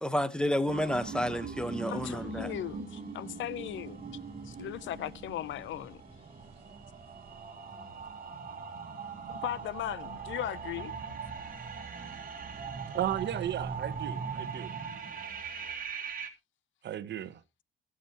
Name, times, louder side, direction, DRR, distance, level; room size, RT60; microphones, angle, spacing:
voice 1, 0.0-2.5, equal, 5° left, 1.1 m, -30 dB
sound 1, 0.7-16.3, right 5 dB, 45° right, 1.9 m, -41 dB
sound 2, 0.8-15.7, right 4 dB, 30° right, 3.9 m, -57 dB
voice 2, 1.9-4.0 4.4-6.0 9.3-10.9, left 12 dB, 75° left, 0.7 m, -37 dB
voice 3, 12.9-14.8 16.8-17.4, right 11 dB, 65° right, 1.0 m, -34 dB
20.5 x 7.3 x 3.0 m
cardioid pair, 90°, 20 cm